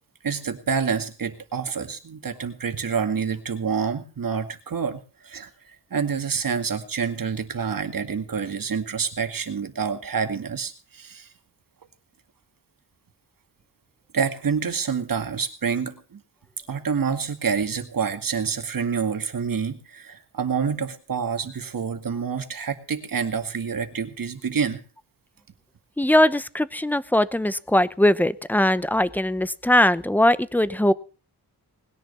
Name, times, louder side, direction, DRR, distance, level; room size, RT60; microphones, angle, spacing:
voice 1, 0.2-11.3 14.1-16.2 16.7-24.8, right 6 dB, 55° right, 7 dB, 2.2 m, -27 dB
voice 2, 26.0-30.9, left 1 dB, 5° left, 16 dB, 0.7 m, -20 dB
20.0 x 10.5 x 5.5 m, 0.38 s
wide cardioid pair, 150°, 40 cm